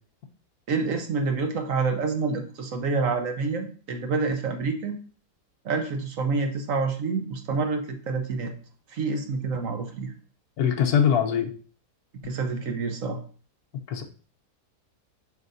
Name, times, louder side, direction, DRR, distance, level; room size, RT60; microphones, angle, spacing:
voice 1, 0.7-5.0 5.6-8.5 8.9-10.1 12.2-13.2, right 4 dB, 60° right, 5 dB, 1.1 m, -27 dB
voice 2, 10.6-11.5 13.9-14.0, left 8 dB, 70° left, 5 dB, 1.3 m, -22 dB
7.8 x 5.0 x 2.6 m, 0.41 s
omnidirectional pair, 1.7 m